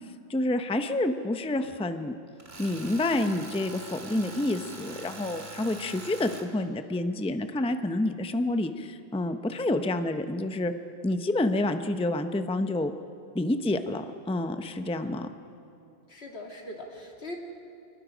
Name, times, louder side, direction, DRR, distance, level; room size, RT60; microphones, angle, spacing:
voice 1, 0.3-2.1 2.6-10.7 11.0-12.9 13.3-15.3, left 1 dB, 5° left, 8 dB, 0.6 m, -28 dB
Tools, 2.4-6.5, right 3 dB, 75° right, 2.2 m, -43 dB
voice 2, 16.1-17.4, left 1 dB, 75° left, 0 dB, 2.7 m, -40 dB
27.0 x 20.5 x 5.1 m, 2.6 s
omnidirectional pair, 1.1 m